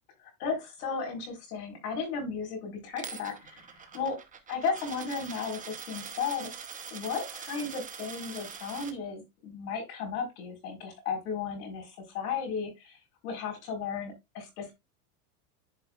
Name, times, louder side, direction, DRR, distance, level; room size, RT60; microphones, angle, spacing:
voice 1, 0.2-4.2 4.5-6.5 6.9-13.0 13.2-14.7, left 5 dB, 80° left, 2 dB, 4.7 m, -35 dB
Coin (dropping), 3.0-8.9, right 7 dB, 15° right, 1.0 m, -43 dB
11.5 x 5.1 x 2.4 m, 0.21 s
supercardioid pair, 135°, 45 cm